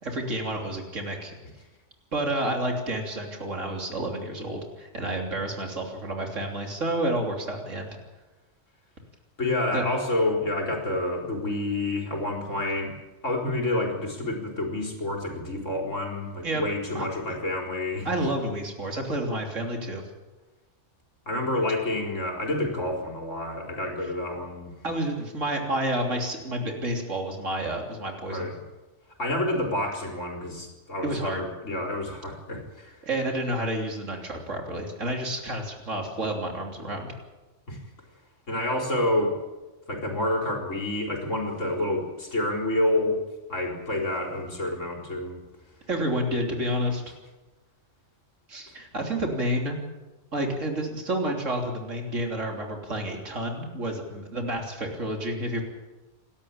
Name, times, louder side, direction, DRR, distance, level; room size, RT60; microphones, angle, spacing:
voice 1, 0.0-1.3 2.1-7.9 9.7-9.8 16.4-16.6 16.9-17.1 18.1-20.0 24.8-28.5 31.0-31.4 33.0-37.1 45.9-47.0 48.5-49.8 50.3-55.6, right 1 dB, 85° right, 2 dB, 3.6 m, -30 dB
voice 2, 9.4-13.0 13.2-18.1 21.3-24.8 28.3-28.6 29.2-33.0 37.7-37.8 38.5-39.4 39.9-43.2 43.5-45.4, left 1 dB, 90° left, 1 dB, 4.6 m, -28 dB
28.5 x 12.5 x 8.8 m, 1.2 s
omnidirectional pair, 1.3 m